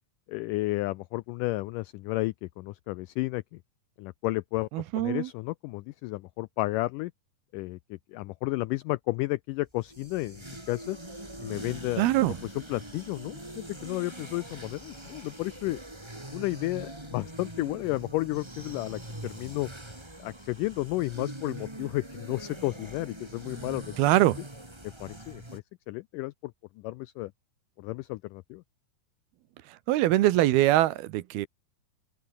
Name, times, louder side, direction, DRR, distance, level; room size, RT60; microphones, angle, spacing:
voice 1, 0.3-3.6 4.0-4.7 4.9-7.1 7.5-11.0 11.4-12.1 12.4-15.8 16.3-19.7 20.2-24.0 24.8-26.5 26.8-27.3 27.8-28.6, left 20 dB, 85° left, 1.8 m, -32 dB
voice 2, 4.7-5.3 12.0-12.4 24.0-24.4 29.9-31.5, right 15 dB, 90° right, 3.0 m, -23 dB
sound 1, 9.7-25.6, right 1 dB, 10° right, 2.8 m, -43 dB
open air
omnidirectional pair, 4.3 m